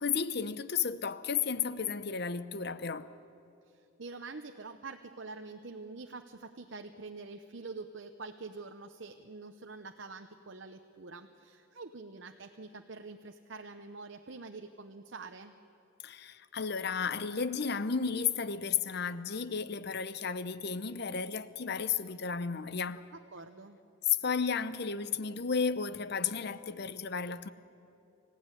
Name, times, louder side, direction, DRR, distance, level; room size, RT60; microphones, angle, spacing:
voice 1, 0.0-3.1 16.0-23.0 24.1-27.5, left 6 dB, 50° left, 0.7 m, -33 dB
voice 2, 3.7-15.5 23.1-23.8, right 3 dB, 60° right, 0.8 m, -46 dB
26.0 x 15.5 x 9.9 m
head